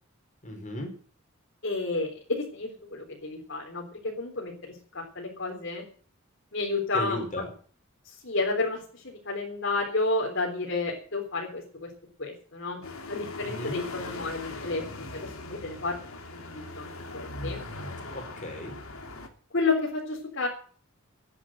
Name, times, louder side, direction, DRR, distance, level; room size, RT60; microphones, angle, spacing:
voice 1, 0.4-0.9 6.9-7.5 13.4-13.8 18.1-18.8, left 1 dB, 35° left, 4 dB, 4.7 m, -35 dB
voice 2, 1.6-3.8 4.2-5.8 6.5-7.5 8.1-11.9 12.2-12.8 13.1-16.2 16.5-17.6 19.5-20.5, left 3 dB, 60° left, -2 dB, 3.9 m, -31 dB
sound 1, 12.8-19.3, left 2 dB, 80° left, 2.9 m, -40 dB
14.5 x 10.0 x 7.6 m, 0.44 s
head